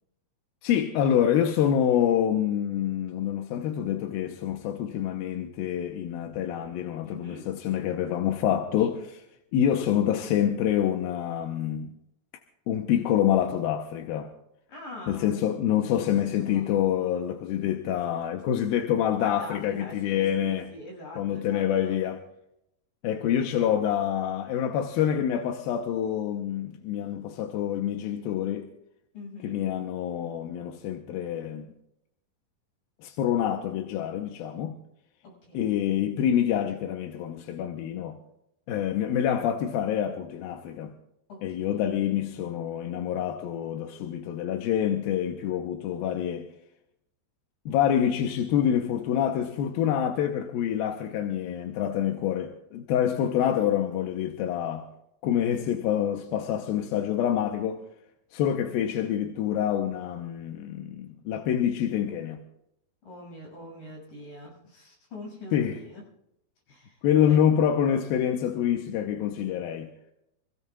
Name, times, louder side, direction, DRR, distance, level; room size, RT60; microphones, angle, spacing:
voice 1, 0.6-9.2 9.5-11.9 12.7-14.3 15.1-20.7 21.2-22.2 23.0-28.7 29.4-31.7 33.0-34.8 35.5-38.2 38.7-40.9 41.4-46.5 47.7-54.9 55.2-57.8 58.3-62.4 65.5-65.8 67.0-69.9, left 10 dB, 80° left, 2.7 m, -26 dB
voice 2, 7.0-7.5 8.7-8.9 14.7-15.4 15.6-16.8 19.2-22.0 29.1-29.6 35.2-35.7 41.3-41.8 63.0-66.0 66.7-67.4, left 1 dB, 65° left, 8.2 m, -44 dB
27.5 x 16.0 x 2.4 m
omnidirectional pair, 4.4 m